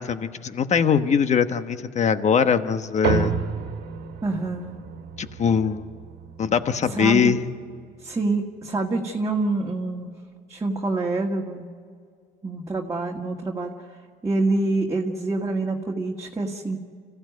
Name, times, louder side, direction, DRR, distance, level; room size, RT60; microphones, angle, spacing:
voice 1, 0.0-3.3 5.2-5.9 6.4-7.5, left 6 dB, 45° left, 10 dB, 1.2 m, -22 dB
sound 1, 3.0-7.8, right 6 dB, 75° right, 1.7 m, -31 dB
voice 2, 4.2-4.8 6.9-7.3 8.0-10.1 10.5-11.7 12.4-13.7 14.2-16.8, right 2 dB, 20° right, -1 dB, 1.9 m, -26 dB
26.5 x 15.5 x 9.4 m, 2.2 s
cardioid pair, 95°, 17 cm